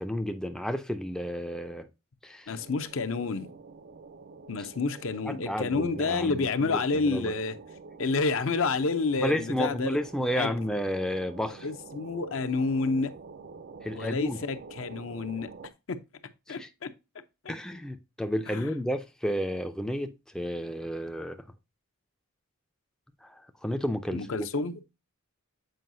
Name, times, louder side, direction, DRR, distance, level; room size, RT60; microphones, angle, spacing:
voice 1, 0.0-1.9 2.2-2.6 4.6-4.7 5.2-7.3 9.2-11.7 13.8-14.4 16.5-16.7 17.5-21.4 23.2-24.5, equal, 5° left, 0.4 m, -32 dB
voice 2, 2.5-3.5 4.5-7.5 8.0-10.0 10.3-10.5 11.6-13.1 14.0-15.5 15.9-16.0 16.5-16.9 17.4-17.5 18.5-18.8 24.1-24.9, left 4 dB, 65° left, 0.6 m, -29 dB
sound 1, 2.5-15.7, right 4 dB, 50° right, 0.5 m, -47 dB
7.7 x 4.7 x 2.6 m
head